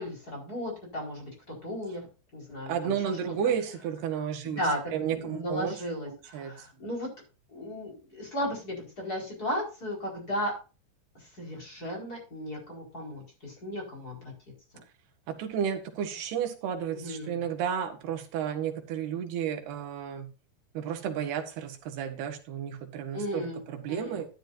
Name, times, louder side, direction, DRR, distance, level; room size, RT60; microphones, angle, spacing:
voice 1, 0.0-2.0 2.3-3.2 4.4-7.1 7.5-10.5 11.1-14.3 16.9-17.4 23.1-23.6 23.9-24.2, equal, 20° left, -1 dB, 5.0 m, -35 dB
voice 2, 2.7-4.6 4.9-5.8 6.1-6.5 15.3-20.3 20.8-24.3, right 8 dB, 80° right, 5 dB, 3.5 m, -32 dB
12.0 x 11.5 x 2.6 m, 0.33 s
omnidirectional pair, 4.5 m